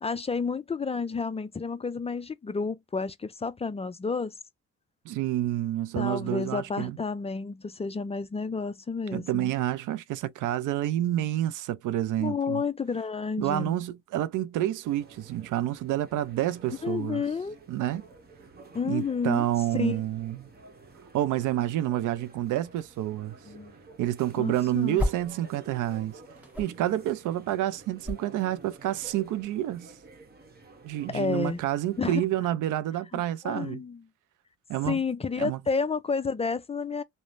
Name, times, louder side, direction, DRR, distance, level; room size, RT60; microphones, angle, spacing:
voice 1, 0.0-4.3 6.0-9.5 12.2-13.8 16.8-17.6 18.7-19.5 19.7-20.0 23.5-23.7 24.4-25.0 31.1-31.6 32.0-32.2 33.1-34.0 34.8-37.0, left 5 dB, 20° left, 0.4 m, -30 dB
voice 2, 5.0-7.0 9.1-12.6 13.4-17.2 17.7-18.0 18.8-20.4 21.1-23.4 24.0-26.2 26.6-29.9 30.8-33.8 34.7-35.0 35.4-35.6, right 13 dB, 80° right, 0.5 m, -29 dB
sound 1, 14.8-32.0, right 3 dB, 30° right, 0.9 m, -51 dB
sound 2, 23.8-25.5 25.7-29.4, left 1 dB, 5° right, 1.0 m, -35 dB
3.1 x 2.0 x 2.5 m
cardioid pair, 90°, 30 cm